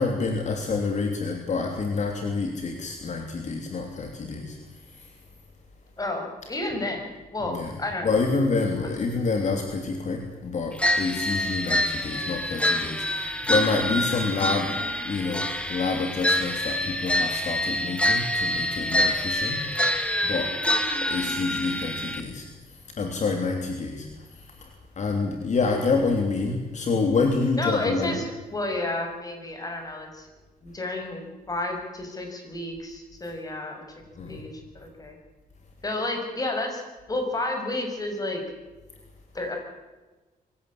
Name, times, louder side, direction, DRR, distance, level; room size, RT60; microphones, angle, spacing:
voice 1, 0.0-4.6 5.0-5.1 7.4-7.8 8.0-14.8 15.0-20.5 21.1-22.4 23.0-24.7 25.0-28.2 34.2-34.4, left 4 dB, 50° left, 3 dB, 3.2 m, -27 dB
voice 2, 6.0-8.2 8.7-8.9 27.6-30.3 30.6-33.8 34.3-35.2 35.8-36.8 37.1-38.4 39.3-39.6, left 2 dB, 25° left, 4 dB, 6.4 m, -31 dB
sound 1, 10.8-22.2, left 1 dB, 5° left, 2.3 m, -26 dB
24.0 x 16.5 x 8.7 m, 1.2 s
cardioid pair, 125°, 15 cm